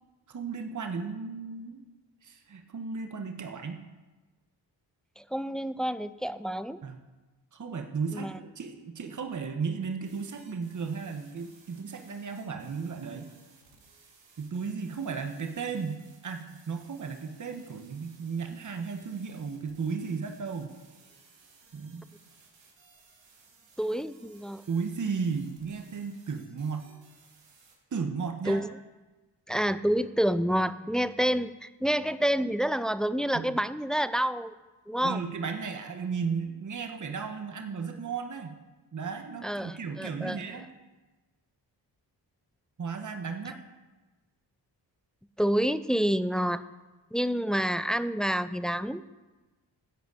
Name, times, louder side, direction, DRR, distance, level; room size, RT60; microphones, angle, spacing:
voice 1, 0.3-1.8 2.2-3.8 6.8-7.0 7.5-13.3 14.4-20.7 21.7-22.0 24.7-26.9 27.9-28.6 33.3-33.6 35.0-38.6 38.9-40.7 42.8-43.6, right 5 dB, 45° right, 5 dB, 1.2 m, -35 dB
voice 2, 5.2-6.8 8.1-8.3 23.8-24.6 28.5-28.7 29.5-34.5 34.9-35.2 39.4-40.4 45.4-46.6 47.1-49.0, equal, ahead, 14 dB, 0.3 m, -28 dB
sound 1, 10.0-27.8, right 4 dB, 90° right, 2.3 m, -60 dB
11.0 x 5.1 x 8.2 m, 1.2 s
cardioid pair, 60°, 43 cm